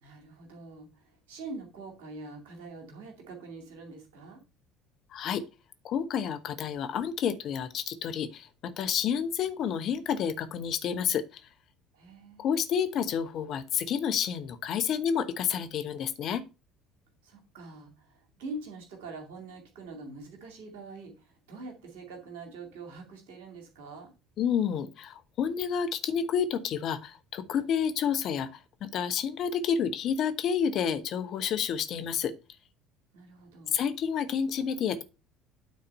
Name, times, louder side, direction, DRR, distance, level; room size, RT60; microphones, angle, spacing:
voice 1, 0.0-4.4 11.9-12.5 17.2-24.1 33.1-33.8, right 3 dB, 65° right, 2 dB, 2.3 m, -44 dB
voice 2, 5.1-5.4 5.8-11.4 12.4-16.4 24.4-32.3 33.7-35.0, left 7 dB, 45° left, 10 dB, 0.9 m, -29 dB
9.3 x 4.1 x 5.4 m, 0.29 s
figure-of-eight pair, 60°, 0 cm